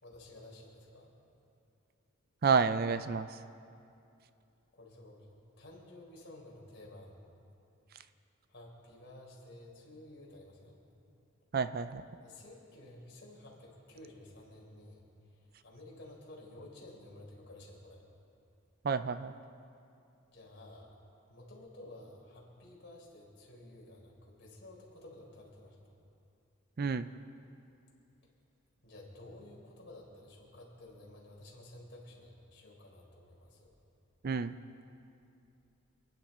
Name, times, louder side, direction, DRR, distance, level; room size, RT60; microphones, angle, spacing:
voice 1, 0.0-1.1 4.7-7.2 8.5-10.8 12.2-15.0 15.3-18.0 20.3-20.9 21.3-25.8 28.8-33.7, left 1 dB, 50° left, -3 dB, 3.9 m, -53 dB
voice 2, 2.4-3.4 11.5-12.0 18.8-19.3 26.8-27.1 34.2-34.5, right 5 dB, 45° right, 12 dB, 0.4 m, -30 dB
29.0 x 10.5 x 4.4 m, 2.6 s
head